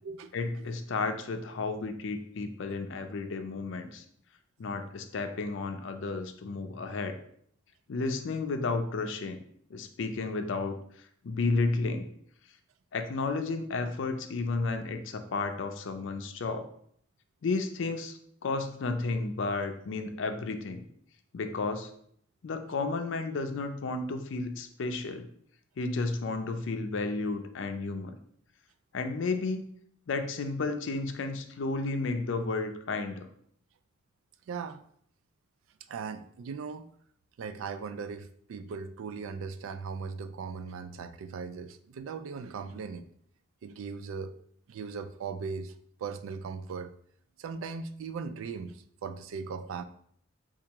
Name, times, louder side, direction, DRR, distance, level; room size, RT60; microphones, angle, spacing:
voice 1, 0.3-4.0 4.6-7.2 7.9-9.4 9.7-10.8 11.2-12.1 12.9-16.7 17.4-20.8 21.3-21.9 22.4-25.3 25.8-28.1 28.9-29.7 30.1-33.3, left 3 dB, 65° left, 7 dB, 0.4 m, -32 dB
voice 2, 34.5-34.8 35.9-36.9 37.4-43.1 43.6-44.3 44.7-45.7 46.0-46.9 47.4-49.8, right 5 dB, 80° right, 11 dB, 0.3 m, -38 dB
4.5 x 2.4 x 2.9 m, 0.64 s
head